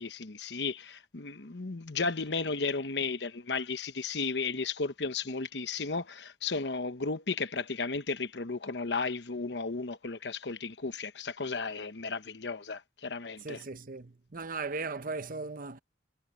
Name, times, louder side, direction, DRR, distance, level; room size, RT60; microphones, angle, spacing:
voice 1, 0.0-13.6, left 4 dB, 70° left, 1.1 m, -34 dB
voice 2, 13.4-15.8, right 3 dB, 50° right, 0.9 m, -37 dB
head